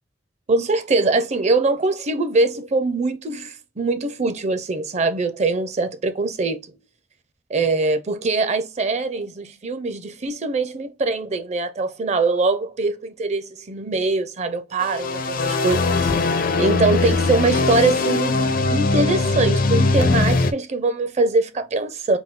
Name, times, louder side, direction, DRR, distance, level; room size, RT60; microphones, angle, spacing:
voice 1, 0.5-6.6 7.5-22.2, right 3 dB, 40° right, 0.6 m, -23 dB
sound 1, 14.8-20.5, left 3 dB, 50° left, 0.5 m, -20 dB
4.0 x 2.7 x 3.6 m
head